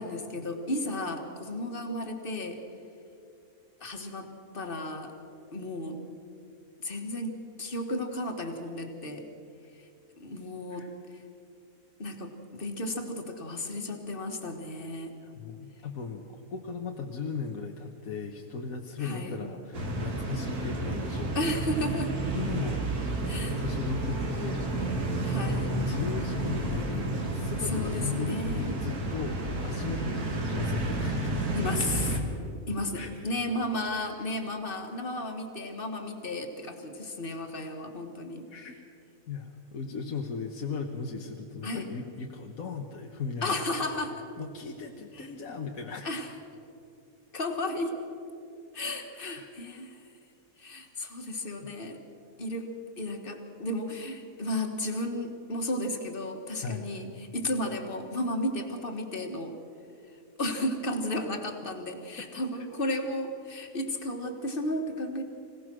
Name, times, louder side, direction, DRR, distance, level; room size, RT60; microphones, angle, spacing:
voice 1, 0.0-2.6 3.8-5.1 5.5-6.0 6.8-9.3 10.2-10.9 11.1-11.2 12.0-15.2 19.0-19.4 21.3-22.1 23.3-23.6 25.2-25.7 27.6-28.8 31.6-32.2 32.7-38.5 41.6-41.9 43.4-44.2 45.1-45.3 46.0-46.3 47.3-48.0 48.7-50.0 50.6-52.0 52.4-52.7 53.0-59.5 60.4-65.2, left 1 dB, 35° left, 5 dB, 1.9 m, -33 dB
voice 2, 15.2-21.6 22.4-22.9 23.4-24.6 25.4-29.4 29.6-31.3 32.9-33.1 34.0-34.1 38.5-38.8 39.3-43.6 44.4-46.1 49.2-49.5 56.6-56.9, left 5 dB, 70° left, 2 dB, 1.6 m, -37 dB
sound 1, 19.7-32.2, right 2 dB, 90° right, 2.6 m, -31 dB
26.0 x 17.0 x 6.2 m, 2.6 s
omnidirectional pair, 1.5 m